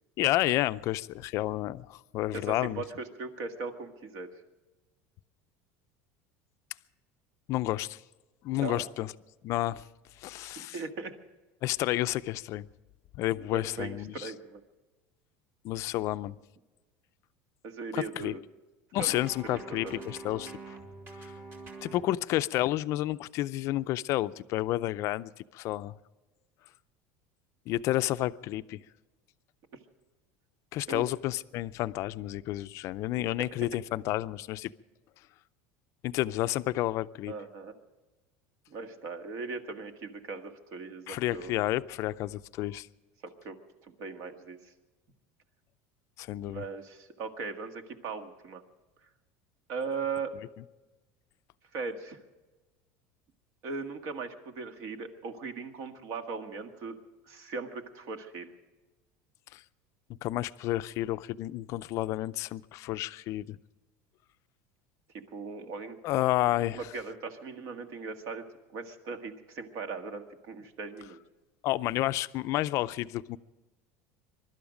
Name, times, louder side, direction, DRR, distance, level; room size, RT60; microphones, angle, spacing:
voice 1, 0.2-2.8 7.5-8.0 8.4-9.1 9.4-9.8 10.2-10.8 11.6-12.7 13.1-14.3 15.6-16.4 17.9-18.3 18.9-20.8 21.2-21.3 21.8-26.0 27.7-28.8 30.7-34.7 36.0-37.3 41.1-42.9 46.2-46.6 59.5-59.6 60.2-63.6 66.0-66.8 71.6-73.4, left 16 dB, 50° left, 0.5 m, -30 dB
voice 2, 2.3-4.4 8.5-8.8 10.4-11.2 13.5-14.6 16.0-16.1 17.6-18.4 19.0-19.2 19.4-19.6 19.8-20.0 30.9-31.0 37.3-37.8 38.7-41.6 43.2-44.7 46.5-48.6 49.7-50.3 51.7-52.2 53.6-56.9 57.3-58.5 65.3-66.0 66.7-68.5 68.7-71.2, right 4 dB, 55° right, 1.7 m, -39 dB
sound 1, 18.9-22.2, right 3 dB, 40° right, 3.0 m, -45 dB
23.0 x 12.5 x 5.1 m
cardioid pair, 145°, 7 cm